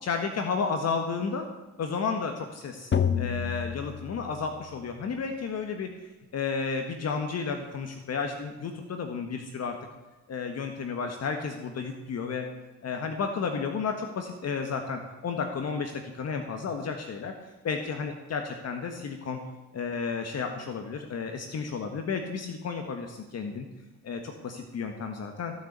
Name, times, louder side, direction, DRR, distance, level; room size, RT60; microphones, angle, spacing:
voice 1, 0.0-1.5 1.8-2.9 3.2-9.7 10.3-12.4 12.8-17.3 17.6-19.4 19.7-23.7 24.0-25.5, left 5 dB, 55° left, 5 dB, 1.6 m, -32 dB
sound 1, 2.9-4.9, left 7 dB, 40° left, 1.2 m, -29 dB
16.0 x 7.0 x 8.2 m, 1.1 s
cardioid pair, 90°, 30 cm